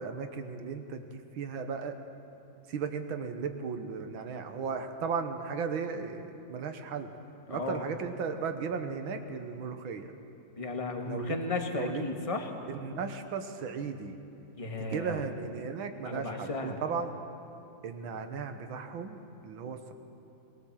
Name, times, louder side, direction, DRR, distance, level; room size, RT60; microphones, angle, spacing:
voice 1, 0.0-2.0 2.7-7.1 7.5-10.2 11.1-11.3 11.7-12.0 12.7-14.2 14.8-17.1 17.8-19.9, right 5 dB, 90° right, 7 dB, 2.0 m, -36 dB
voice 2, 7.5-7.8 10.6-12.5 14.5-15.2 16.0-16.8, left 3 dB, 20° left, 3 dB, 1.4 m, -34 dB
22.0 x 18.5 x 7.3 m, 2.8 s
omnidirectional pair, 2.1 m